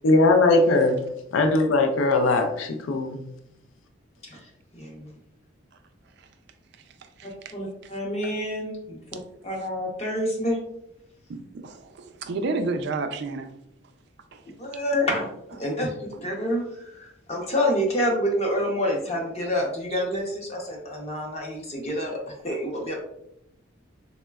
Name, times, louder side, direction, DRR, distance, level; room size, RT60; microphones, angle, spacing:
voice 1, 0.0-3.3, left 2 dB, 70° left, 5 dB, 0.4 m, -20 dB
voice 2, 4.2-5.1 7.2-9.2 9.4-10.6 14.6-15.3 15.6-22.2 22.4-23.0, equal, 30° left, 0 dB, 0.6 m, -28 dB
voice 3, 6.8-7.5 7.8-7.9 9.1-9.2 11.3-13.5 14.3-14.4 19.9-20.0 22.5-22.6, right 3 dB, 55° right, 7 dB, 0.3 m, -32 dB
3.9 x 2.1 x 2.2 m, 0.77 s
head